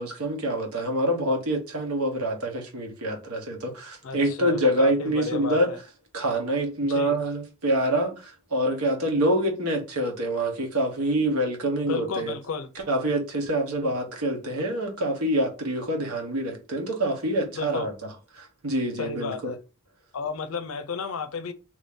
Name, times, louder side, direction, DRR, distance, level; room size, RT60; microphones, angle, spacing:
voice 1, 0.0-5.7 6.1-12.3 12.9-17.9 18.4-19.5, right 1 dB, 80° right, 1.1 m, -26 dB
voice 2, 4.0-5.8 6.8-7.2 11.8-12.7 17.5-17.9 19.0-19.6 20.1-21.5, left 5 dB, 65° left, 0.5 m, -33 dB
3.1 x 2.7 x 3.5 m
head